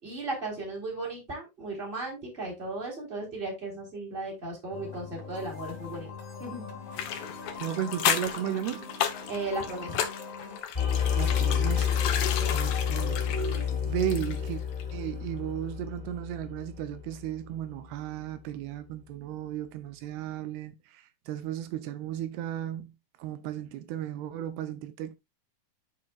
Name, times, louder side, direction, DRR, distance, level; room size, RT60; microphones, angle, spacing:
voice 1, 0.0-6.1 6.4-6.7 9.3-10.0 12.4-12.5, right 2 dB, 15° right, 3.4 m, -36 dB
sound 1, 4.7-10.6, left 5 dB, 45° left, 2.7 m, -42 dB
sound 2, 6.9-14.5 14.8-14.9, left 9 dB, 70° left, 2.7 m, -33 dB
voice 2, 7.2-9.0 11.2-12.0 12.5-14.6 14.9-22.9 23.2-25.2, right 11 dB, 85° right, 2.7 m, -35 dB
sound 3, 10.7-17.5, left 8 dB, 10° left, 2.7 m, -29 dB
10.5 x 5.9 x 2.4 m
omnidirectional pair, 4.6 m